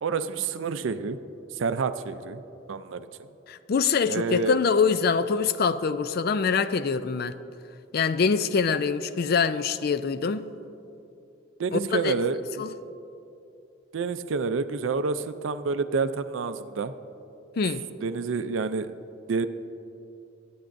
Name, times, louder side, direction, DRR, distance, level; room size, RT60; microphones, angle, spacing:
voice 1, 0.0-1.2 1.6-2.4 2.7-3.1 4.1-4.6 11.6-12.4 13.9-16.9 18.0-18.9 19.3-19.5, right 4 dB, 70° right, 11 dB, 0.4 m, -28 dB
voice 2, 3.5-7.3 7.9-10.5 11.7-12.1 12.6-12.7 17.6-17.8, left 5 dB, 50° left, 13 dB, 0.4 m, -24 dB
22.0 x 9.4 x 2.6 m, 2.8 s
head